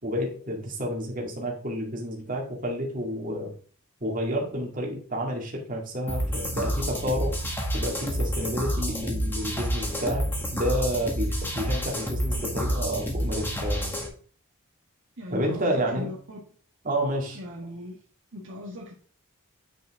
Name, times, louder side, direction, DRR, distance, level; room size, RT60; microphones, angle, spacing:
voice 1, 0.0-3.5 4.0-7.4 7.7-13.9 15.3-16.1 16.8-17.4, equal, 40° right, -1 dB, 2.3 m, -30 dB
sound 1, 6.1-14.1, equal, 10° left, 1.7 m, -29 dB
voice 2, 15.2-16.4 17.3-18.0 18.3-18.9, left 1 dB, 60° right, -3 dB, 1.8 m, -39 dB
8.9 x 5.4 x 3.7 m, 0.42 s
head